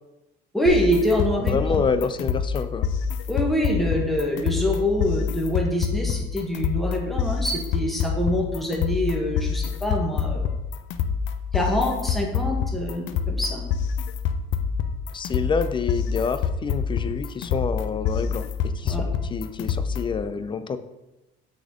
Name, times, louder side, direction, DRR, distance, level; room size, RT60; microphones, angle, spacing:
voice 1, 0.5-1.8 3.3-10.4 11.5-13.6 18.9-19.0, left 1 dB, ahead, -2 dB, 1.4 m, -25 dB
sound 1, 0.7-20.2, left 6 dB, 80° left, 0.6 m, -27 dB
voice 2, 1.5-2.9 15.1-20.8, left 5 dB, 25° left, 11 dB, 0.5 m, -27 dB
6.5 x 4.2 x 6.2 m, 0.98 s
cardioid pair, 125°, 19 cm